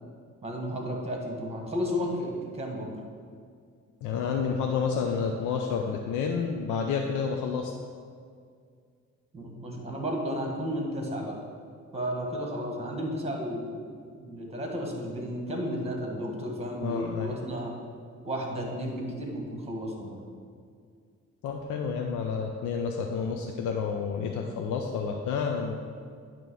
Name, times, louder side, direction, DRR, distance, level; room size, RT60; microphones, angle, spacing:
voice 1, 0.4-2.9 9.3-11.4 11.9-13.8 14.2-17.7 18.2-20.2, equal, 20° right, 0 dB, 1.7 m, -33 dB
voice 2, 4.0-7.7 16.8-17.4 21.4-25.8, left 6 dB, 80° left, 2 dB, 0.6 m, -30 dB
9.1 x 3.0 x 6.3 m, 2.2 s
cardioid pair, 90°, 30 cm